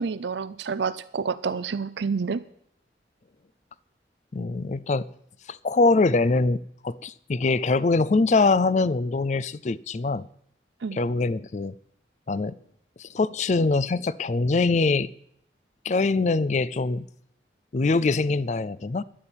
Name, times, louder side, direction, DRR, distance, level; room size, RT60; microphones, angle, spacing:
voice 1, 0.0-2.4 10.8-11.0, right 5 dB, 75° right, 14 dB, 0.5 m, -28 dB
voice 2, 4.3-5.1 5.5-6.6 6.8-10.3 10.9-11.7 12.3-12.5 13.0-15.1 15.8-17.0 17.7-19.0, left 3 dB, 40° left, 19 dB, 0.4 m, -23 dB
11.0 x 8.5 x 8.8 m, 0.69 s
head